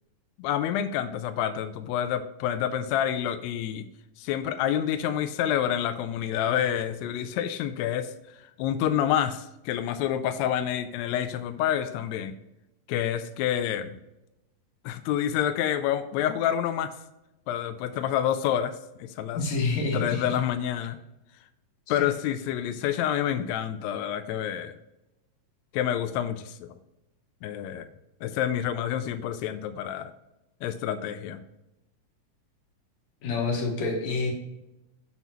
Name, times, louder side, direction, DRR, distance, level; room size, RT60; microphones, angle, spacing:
voice 1, 0.4-3.8 4.2-8.1 8.6-12.4 12.9-13.9 14.8-16.9 17.5-19.4 19.9-21.0 21.9-24.8 25.7-26.7 27.4-27.9 28.2-30.1 30.6-31.4, left 10 dB, 85° left, 10 dB, 1.6 m, -28 dB
voice 2, 19.3-20.4 21.9-22.0 33.2-34.3, left 3 dB, 65° left, 1 dB, 2.6 m, -28 dB
10.5 x 4.0 x 3.0 m, 0.92 s
omnidirectional pair, 3.6 m